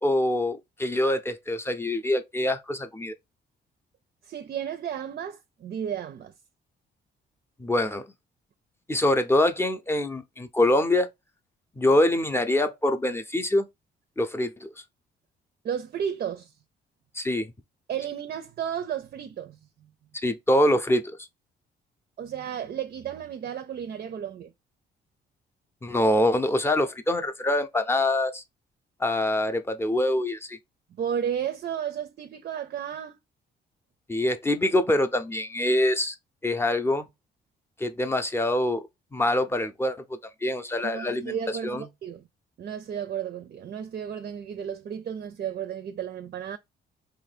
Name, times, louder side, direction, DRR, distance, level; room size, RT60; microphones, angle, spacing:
voice 1, 0.0-3.1 7.6-8.1 8.9-11.1 11.8-13.7 14.2-14.7 17.1-17.5 20.2-21.2 25.8-28.4 29.0-30.6 34.1-36.1 36.4-37.1 37.8-38.8 39.1-41.4 41.6-41.9, left 1 dB, 10° left, 0.6 m, -24 dB
voice 2, 4.2-6.3 15.6-16.5 17.9-19.9 22.2-24.5 30.9-33.2 40.8-42.3 42.6-46.6, right 8 dB, 50° right, 0.5 m, -33 dB
2.9 x 2.6 x 4.1 m
cardioid pair, 90°, 20 cm